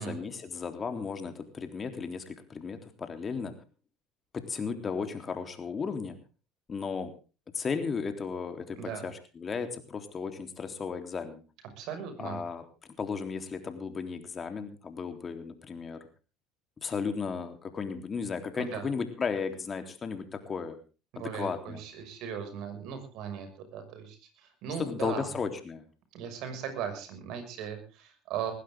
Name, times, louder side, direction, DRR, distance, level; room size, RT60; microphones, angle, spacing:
voice 1, 0.0-3.5 4.3-6.2 6.7-7.1 7.5-11.4 12.2-12.6 13.0-16.0 16.8-20.8 21.2-21.8 24.8-25.9, left 5 dB, 35° left, 7 dB, 3.5 m, -35 dB
voice 2, 11.8-12.4 18.6-18.8 21.1-25.3 26.1-28.5, right 8 dB, 65° right, 7 dB, 6.2 m, -38 dB
20.0 x 15.5 x 3.7 m, 0.34 s
hypercardioid pair, 75°, 0 cm